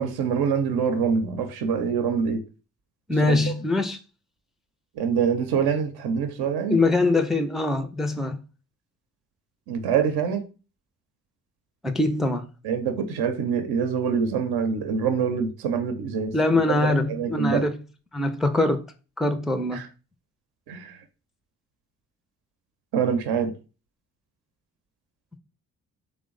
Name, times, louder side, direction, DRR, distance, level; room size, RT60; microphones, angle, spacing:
voice 1, 0.0-2.4 3.2-3.5 4.9-6.8 9.7-10.5 12.6-17.6 19.7-19.9 20.7-21.0 22.9-23.5, right 6 dB, 70° right, 0.6 m, -25 dB
voice 2, 3.1-4.0 6.7-8.4 11.8-12.4 16.3-17.8 18.1-18.8 19.2-19.8, left 2 dB, ahead, 0.4 m, -23 dB
3.1 x 2.1 x 3.6 m
hypercardioid pair, 40°, 39 cm